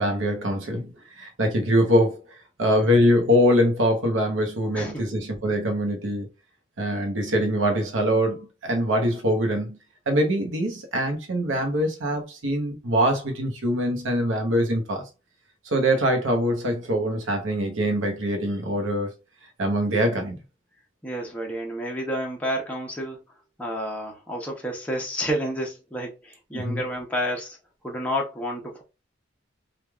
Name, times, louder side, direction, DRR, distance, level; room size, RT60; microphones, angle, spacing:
voice 1, 0.0-2.2 2.6-6.3 6.8-9.8 10.1-15.0 15.6-19.1 19.6-20.4 26.5-26.8, equal, 85° right, 0.8 m, -23 dB
voice 2, 4.7-5.0 21.0-23.2 23.6-27.6 27.8-28.8, equal, 5° left, 0.7 m, -30 dB
3.1 x 2.4 x 2.3 m
head